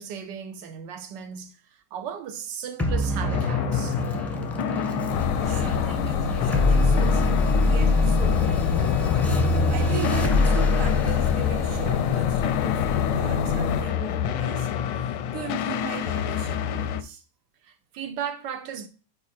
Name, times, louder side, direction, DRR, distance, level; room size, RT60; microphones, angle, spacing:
voice 1, 0.0-4.0 17.6-18.9, right 8 dB, 85° right, 1.4 m, -36 dB
sound 1, 2.8-13.6, left 1 dB, ahead, 0.6 m, -25 dB
sound 2, 3.2-17.0, left 9 dB, 90° left, 1.3 m, -28 dB
voice 2, 4.6-5.2 5.4-8.9 9.7-14.7 15.3-17.2, right 8 dB, 55° right, 1.2 m, -39 dB
sound 3, 5.1-13.8, left 9 dB, 70° left, 0.8 m, -27 dB
5.3 x 4.8 x 4.2 m
omnidirectional pair, 1.9 m